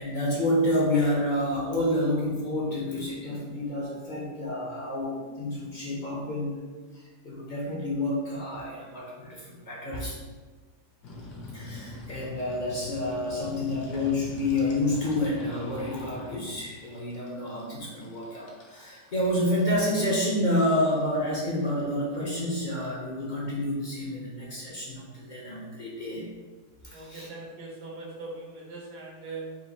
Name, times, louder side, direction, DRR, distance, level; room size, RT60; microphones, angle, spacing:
voice 1, 0.0-6.6 6.9-10.2 11.5-26.3 26.8-27.3, left 1 dB, 55° left, -4 dB, 0.5 m, -29 dB
sound 1, 11.0-22.6, left 2 dB, 75° left, 1.4 m, -44 dB
voice 2, 26.9-29.6, right 3 dB, 75° right, -2 dB, 1.4 m, -40 dB
4.3 x 2.4 x 4.0 m, 1.4 s
omnidirectional pair, 1.8 m